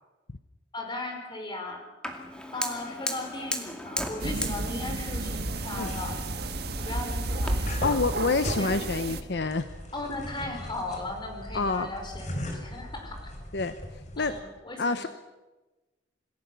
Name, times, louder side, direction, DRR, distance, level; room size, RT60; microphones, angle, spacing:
voice 1, 0.7-1.8 2.5-6.2 6.8-8.0 8.6-8.8 9.9-13.2 14.1-15.1, left 2 dB, 25° left, 3 dB, 4.9 m, -37 dB
Fire, 2.0-7.5, left 1 dB, 5° left, 2.4 m, -37 dB
sound 1, 4.2-9.2, right 2 dB, 60° right, 1.5 m, -32 dB
sound 2, 5.2-14.4, left 1 dB, 40° left, 4.0 m, -39 dB
voice 2, 7.8-9.7 11.5-11.9 13.5-13.7 14.2-14.3 14.8-15.1, left 3 dB, 65° left, 10 dB, 0.9 m, -27 dB
27.0 x 17.5 x 7.0 m, 1.2 s
head